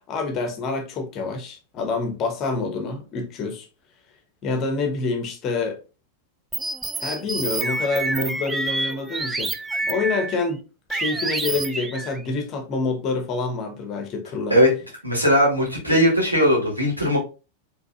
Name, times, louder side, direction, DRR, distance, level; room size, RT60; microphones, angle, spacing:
voice 1, 0.1-3.7 4.4-5.8 7.0-9.5 9.9-10.6 10.9-14.6, left 3 dB, 35° left, 1.1 m, -27 dB
sound 1, 6.5-10.5 10.9-12.2, right 2 dB, 10° right, 0.4 m, -28 dB
voice 2, 15.0-17.2, equal, 85° right, 2.0 m, -18 dB
5.1 x 3.5 x 2.5 m
figure-of-eight pair, 90°, 0 cm